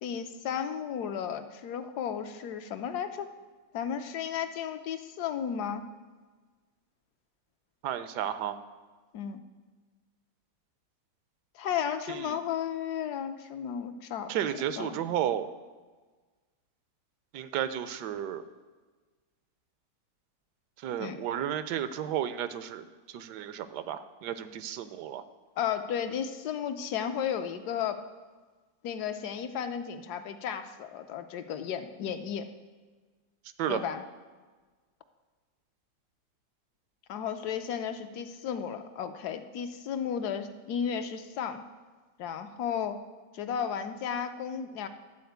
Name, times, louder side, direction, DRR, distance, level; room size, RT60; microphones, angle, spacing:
voice 1, 0.0-3.3 3.7-5.9 9.1-9.4 11.5-14.3 14.8-15.0 21.0-21.2 25.6-28.0 28.8-32.5 33.7-34.0 37.1-41.6 42.2-43.0 43.3-44.9, left 8 dB, 75° left, 8 dB, 1.2 m, -34 dB
voice 2, 7.8-8.6 12.1-12.4 14.3-15.5 17.3-18.4 20.8-25.2 33.6-33.8, right 10 dB, 85° right, 12 dB, 1.2 m, -33 dB
11.5 x 4.3 x 7.9 m, 1.4 s
omnidirectional pair, 1.8 m